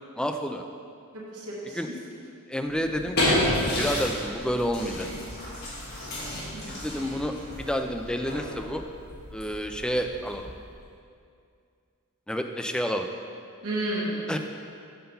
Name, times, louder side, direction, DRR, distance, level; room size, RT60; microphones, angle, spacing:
voice 1, 0.2-0.6 1.7-1.9 2.5-3.4 3.8-5.1 6.7-8.8 9.3-10.5 12.3-13.1 14.3-14.4, equal, 5° left, 5 dB, 0.3 m, -29 dB
voice 2, 1.1-1.8 6.5-6.9 13.6-14.2, right 1 dB, 90° right, -6 dB, 1.3 m, -32 dB
sound 1, 2.7-10.8, left 1 dB, 50° left, 1.6 m, -31 dB
5.7 x 5.4 x 5.7 m, 2.4 s
head